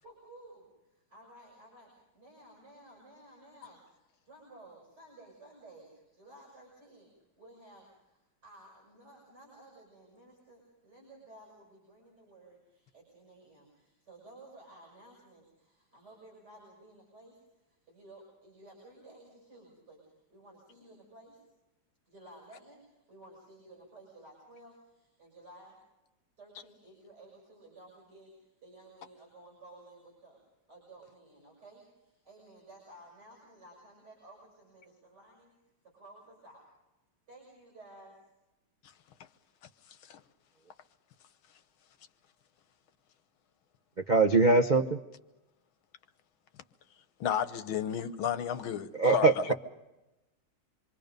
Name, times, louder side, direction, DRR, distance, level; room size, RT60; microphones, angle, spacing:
voice 1, 0.0-21.4 22.1-25.8 26.4-30.4 30.7-35.5 35.8-36.6 37.3-38.1, right 1 dB, 50° right, 7.3 m, -55 dB
voice 2, 44.0-45.0 48.9-49.5, right 3 dB, 75° right, 0.4 m, -23 dB
voice 3, 47.2-49.5, left 9 dB, 80° left, 1.8 m, -32 dB
27.0 x 24.0 x 5.3 m
omnidirectional pair, 2.2 m